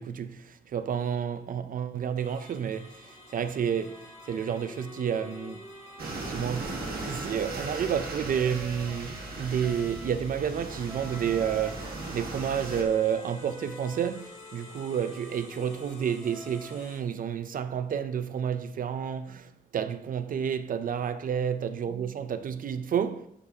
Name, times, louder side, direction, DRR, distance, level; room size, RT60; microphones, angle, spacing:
voice 1, 0.0-5.7 6.2-23.3, right 8 dB, 65° right, 0.5 m, -30 dB
sound 1, 2.2-17.0, left 2 dB, 65° left, 2.6 m, -52 dB
Wind instrument woodwind instrument, 3.7-10.1 10.9-16.9, equal, ahead, 1.8 m, -45 dB
sound 2, 6.0-12.8, right 2 dB, 80° right, 1.6 m, -38 dB
11.5 x 7.1 x 2.8 m
wide cardioid pair, 170°, 15 cm